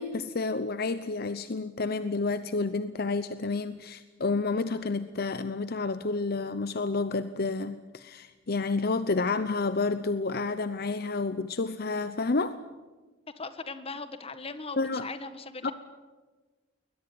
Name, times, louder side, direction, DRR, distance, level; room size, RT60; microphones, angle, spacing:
voice 1, 0.0-12.6 14.8-15.1 15.6-15.7, left 3 dB, 55° left, 12 dB, 0.8 m, -30 dB
voice 2, 13.4-15.7, left 3 dB, 30° left, 11 dB, 1.6 m, -39 dB
21.5 x 20.5 x 9.6 m, 1.3 s
head